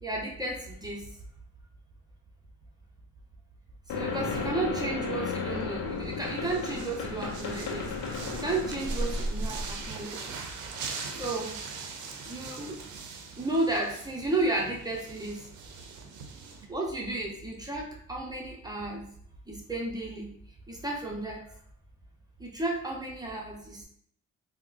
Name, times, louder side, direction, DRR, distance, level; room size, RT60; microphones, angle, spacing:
voice 1, 0.0-1.0 3.9-10.2 11.1-11.6 12.3-12.8 13.4-15.4 16.7-19.0 19.5-20.3 20.7-21.4 22.4-23.8, right 2 dB, 15° right, -2 dB, 0.6 m, -33 dB
sound 1, 3.9-9.9, left 3 dB, 80° left, 0.6 m, -33 dB
sound 2, 3.9-16.6, right 5 dB, 85° right, 0.5 m, -43 dB
3.5 x 2.1 x 2.4 m, 0.64 s
cardioid pair, 90°, 30 cm